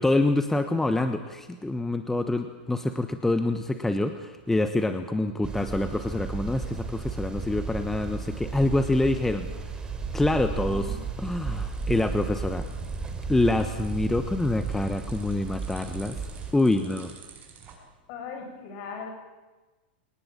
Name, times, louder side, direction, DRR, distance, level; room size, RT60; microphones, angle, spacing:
voice 1, 0.0-9.8 10.1-12.7 13.3-16.3 16.5-17.1, left 2 dB, 5° left, 9 dB, 1.2 m, -26 dB
sound 1, 5.4-16.5, right 4 dB, 15° right, 3.2 m, -34 dB
voice 2, 10.6-11.0 16.8-16.9 18.1-19.1, left 5 dB, 50° left, 5 dB, 6.4 m, -39 dB
sound 2, 11.5-17.8, right 7 dB, 30° right, 6.2 m, -51 dB
24.0 x 19.0 x 8.8 m, 1.2 s
hypercardioid pair, 130°, 6 cm